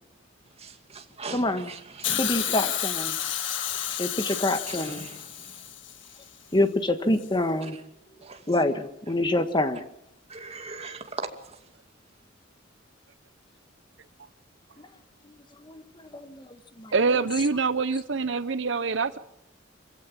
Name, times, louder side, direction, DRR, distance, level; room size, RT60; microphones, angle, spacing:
voice 1, 0.6-2.3 4.7-5.2 8.2-8.4 10.3-11.3, right 4 dB, 35° right, 2.4 m, -39 dB
voice 2, 1.3-1.7 2.2-3.2 4.0-5.1 6.5-7.8 8.5-9.8 14.8-14.9 15.6-16.5 16.8-16.9, left 1 dB, 25° left, 1.5 m, -26 dB
Hiss, 2.0-6.2 7.2-7.3, left 10 dB, 70° left, 1.8 m, -31 dB
voice 3, 16.9-19.2, right 4 dB, 70° right, 0.8 m, -25 dB
27.0 x 16.5 x 7.4 m
head